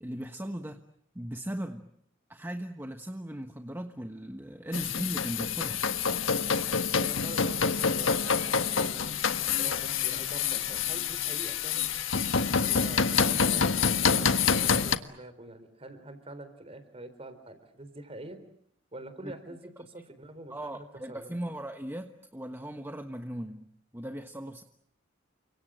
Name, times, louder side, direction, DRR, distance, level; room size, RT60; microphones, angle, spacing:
voice 1, 0.0-0.8 1.1-1.9 2.3-5.8 19.2-19.3 20.5-24.6, right 1 dB, 10° right, 6 dB, 1.3 m, -38 dB
sound 1, 4.7-15.0, left 6 dB, 90° left, 1.5 m, -27 dB
voice 2, 7.0-11.9 12.6-18.4 18.9-21.3, right 1 dB, 30° right, 11 dB, 4.0 m, -45 dB
30.0 x 25.0 x 7.6 m, 0.68 s
head